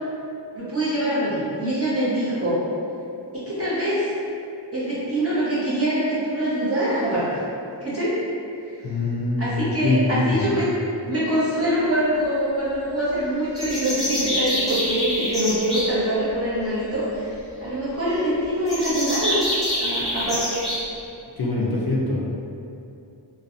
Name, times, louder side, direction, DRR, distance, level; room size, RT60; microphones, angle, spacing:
voice 1, 0.5-2.6 3.3-4.1 4.7-7.4 7.8-8.2 8.6-8.7 9.4-10.7 11.1-17.3 17.6-19.4 19.8-20.6, right 1 dB, 30° right, -11 dB, 0.9 m, -24 dB
voice 2, 8.8-10.5 21.4-22.2, left 2 dB, 55° left, -4 dB, 0.5 m, -23 dB
sound 1, 13.6-15.8 18.7-20.8, equal, ahead, 1.0 m, -26 dB
2.5 x 2.2 x 2.4 m, 2.6 s
wide cardioid pair, 65°, 45 cm